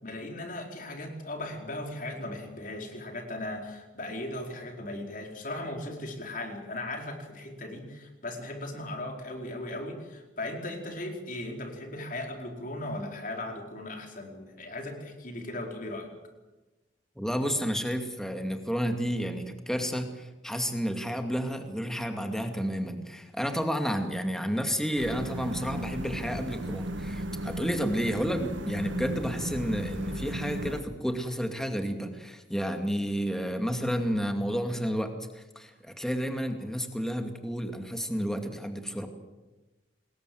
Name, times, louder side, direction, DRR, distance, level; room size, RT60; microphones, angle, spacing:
voice 1, 0.0-16.1, left 1 dB, 45° left, 3 dB, 4.6 m, -37 dB
voice 2, 17.2-39.1, equal, 5° left, 5 dB, 2.3 m, -31 dB
sound 1, 25.0-30.8, right 1 dB, 75° right, 1.9 m, -35 dB
26.5 x 21.0 x 7.9 m, 1.1 s
head